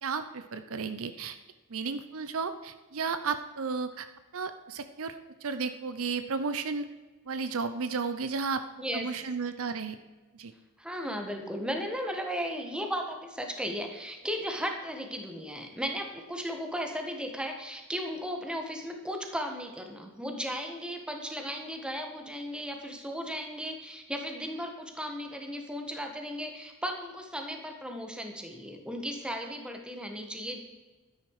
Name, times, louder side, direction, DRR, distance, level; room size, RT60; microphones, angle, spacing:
voice 1, 0.0-1.4 1.7-4.1 4.3-6.9 7.3-8.6 8.9-10.0 10.3-10.5, right 5 dB, 65° right, 10 dB, 0.7 m, -33 dB
voice 2, 8.8-9.1 10.8-30.6, equal, 5° right, 3 dB, 1.6 m, -36 dB
12.5 x 10.5 x 4.9 m, 1.2 s
head